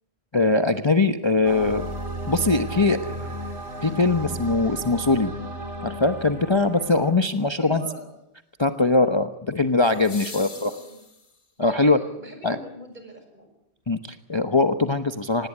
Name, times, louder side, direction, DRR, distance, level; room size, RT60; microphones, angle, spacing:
voice 1, 0.3-1.9 2.3-3.0 3.8-5.3 5.8-7.8 8.6-10.7 11.6-12.0 12.4-12.6 13.9-15.5, left 3 dB, 25° left, 8 dB, 1.0 m, -21 dB
sound 1, 1.4-7.1, equal, 70° right, 3.1 m, -34 dB
sound 2, 4.2-4.3 9.8-11.6 13.8-13.9, left 3 dB, 40° left, 2.2 m, -42 dB
voice 2, 7.6-8.1 10.3-11.0 11.6-13.5, equal, 40° right, 5 dB, 6.8 m, -42 dB
26.0 x 19.5 x 8.5 m, 0.86 s
omnidirectional pair, 1.2 m